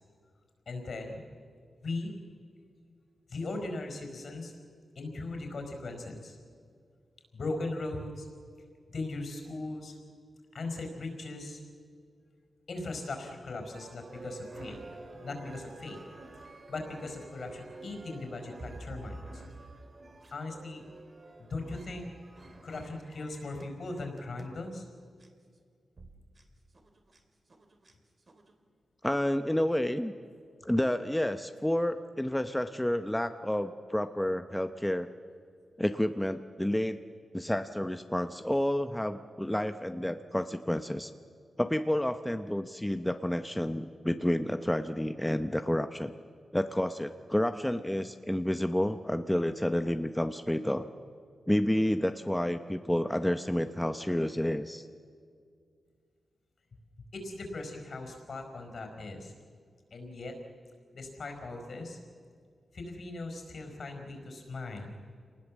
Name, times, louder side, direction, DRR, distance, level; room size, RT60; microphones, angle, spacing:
voice 1, 0.7-1.2 1.8-2.1 3.3-4.5 4.9-6.4 7.3-8.3 8.9-9.9 10.5-11.6 12.7-14.8 15.1-16.0 16.7-19.4 20.3-20.8 21.4-22.1 22.6-24.8 57.1-59.3 59.9-60.4 60.9-62.0 62.7-64.9, left 2 dB, 60° left, 4 dB, 4.7 m, -39 dB
sound 1, 13.7-24.6 25.2-25.3 26.0-26.1 26.4-26.5 26.7-27.2 27.5-27.9 28.3-28.5, right 2 dB, 40° right, 3.0 m, -49 dB
voice 2, 29.0-30.1 30.6-35.1 35.8-37.0 37.3-41.1 41.6-46.1 46.5-50.9 51.5-54.9, left 1 dB, 5° left, 9 dB, 0.8 m, -30 dB
27.0 x 19.5 x 7.4 m, 2.2 s
cardioid pair, 85°, 0 cm